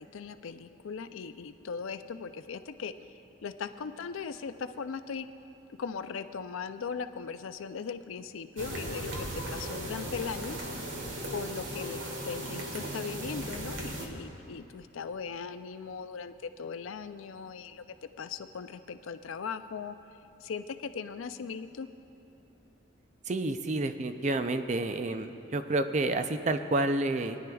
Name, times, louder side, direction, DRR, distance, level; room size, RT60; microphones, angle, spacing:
voice 1, 0.0-5.3 5.8-10.6 11.3-17.8 18.2-20.0 20.4-21.9, left 5 dB, 80° left, 10 dB, 0.4 m, -39 dB
sound 1, 8.6-14.1, right 1 dB, 70° right, 1.5 m, -37 dB
voice 2, 23.3-27.4, right 2 dB, 35° right, 8 dB, 0.4 m, -29 dB
21.5 x 10.5 x 2.3 m, 2.8 s
head